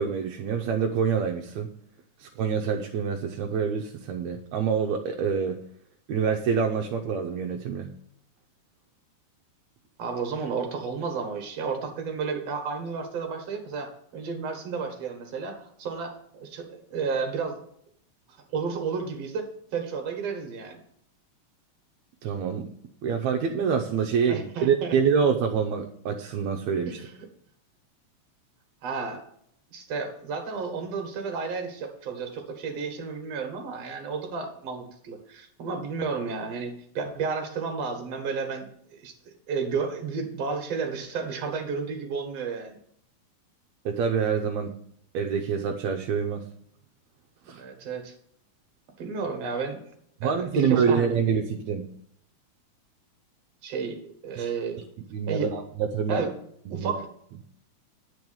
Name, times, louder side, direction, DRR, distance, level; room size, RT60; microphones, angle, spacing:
voice 1, 0.0-1.7 2.2-5.6 6.1-7.9 22.2-22.7 23.0-27.0 43.9-44.8 45.1-46.5 47.5-47.6 50.2-51.9 54.4-54.5 55.1-56.3 56.7-56.9, right 6 dB, 75° right, 4 dB, 1.9 m, -26 dB
voice 2, 10.0-17.6 18.5-20.8 24.2-25.0 26.9-27.3 28.8-29.2 29.7-39.1 39.5-42.8 47.5-48.1 49.0-49.8 50.2-51.1 53.6-54.8 55.3-55.5 56.1-56.3 56.7-57.1, right 5 dB, 60° right, 4 dB, 2.6 m, -32 dB
9.8 x 4.7 x 7.0 m, 0.69 s
omnidirectional pair, 3.4 m